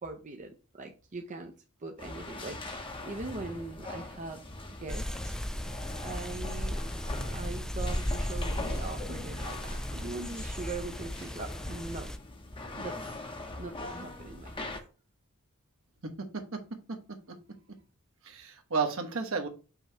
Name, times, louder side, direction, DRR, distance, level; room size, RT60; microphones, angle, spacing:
voice 1, 0.0-1.5 1.8-4.4 4.8-5.7 6.0-6.8 7.3-12.1 12.7-12.9 13.3-14.7, right 3 dB, 35° right, 3 dB, 0.6 m, -41 dB
sound 1, 2.0-14.8, left 2 dB, 25° left, 0.9 m, -42 dB
sound 2, 4.9-12.2, equal, 5° left, 0.3 m, -35 dB
voice 2, 16.0-16.6 16.9-17.4 18.2-19.5, right 4 dB, 65° right, 4 dB, 1.2 m, -33 dB
5.6 x 3.1 x 5.5 m, 0.34 s
head